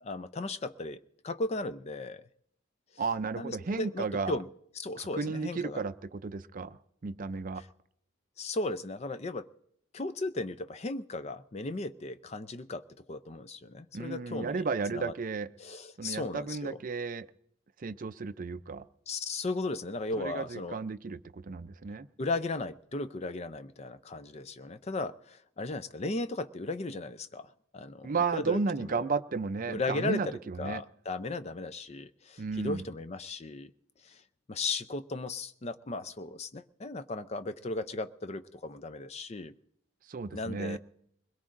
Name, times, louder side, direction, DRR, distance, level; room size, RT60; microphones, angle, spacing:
voice 1, 0.0-2.3 3.4-4.5 4.8-5.8 8.4-9.5 9.9-14.6 14.9-15.1 15.6-16.8 19.1-20.8 22.2-28.6 28.9-29.1 29.7-33.7 34.0-34.2 34.5-39.6 40.3-40.8, left 2 dB, 30° left, 12 dB, 0.5 m, -36 dB
voice 2, 3.0-4.4 5.0-7.6 13.9-15.5 16.0-17.3 17.8-18.9 20.2-22.1 28.0-30.8 32.4-32.9 40.0-40.8, right 4 dB, 40° right, 12 dB, 0.5 m, -33 dB
22.0 x 21.0 x 2.6 m, 0.75 s
head